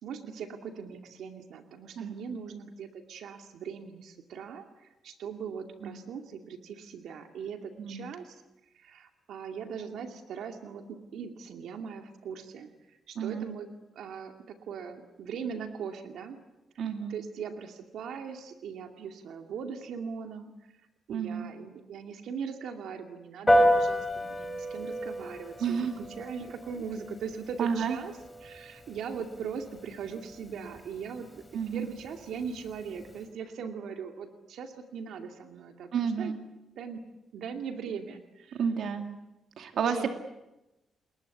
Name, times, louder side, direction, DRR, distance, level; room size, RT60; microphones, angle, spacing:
voice 1, 0.0-8.4 8.7-13.7 13.9-16.4 17.1-20.5 21.1-28.1 28.4-31.4 31.7-36.3 36.8-37.0 37.3-38.6 39.7-40.1, right 6 dB, 85° right, 5 dB, 2.4 m, -40 dB
voice 2, 7.8-8.1 13.2-13.5 16.8-17.1 21.1-21.5 25.6-25.9 27.6-28.0 31.5-31.9 35.9-36.4 38.5-39.1 39.6-40.1, right 7 dB, 70° right, 5 dB, 2.4 m, -30 dB
Piano, 23.5-33.2, equal, 10° left, 3.6 m, -31 dB
29.0 x 21.0 x 8.5 m, 0.98 s
cardioid pair, 140°, 0 cm